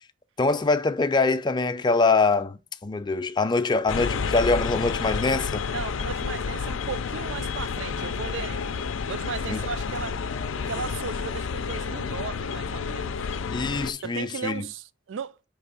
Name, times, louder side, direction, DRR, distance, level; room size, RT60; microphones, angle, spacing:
voice 1, 0.4-5.7 9.5-9.6 13.5-14.7, left 3 dB, 25° left, 0.4 m, -24 dB
sound 1, 3.9-13.9, left 5 dB, 85° left, 0.4 m, -30 dB
voice 2, 5.7-10.2 10.5-13.2 14.0-15.4, right 6 dB, 70° right, 0.4 m, -36 dB
5.3 x 3.3 x 5.5 m
head